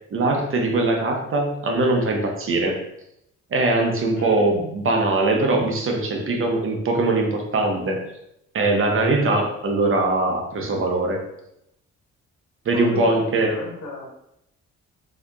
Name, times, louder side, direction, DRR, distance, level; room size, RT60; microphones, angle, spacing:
voice 1, 0.1-2.8 3.5-8.0 8.5-11.3 12.7-13.5, right 2 dB, 45° right, 2 dB, 0.7 m, -21 dB
voice 2, 12.7-14.1, left 3 dB, 65° left, -2 dB, 1.3 m, -34 dB
4.1 x 2.8 x 2.4 m, 0.81 s
cardioid pair, 90°, 30 cm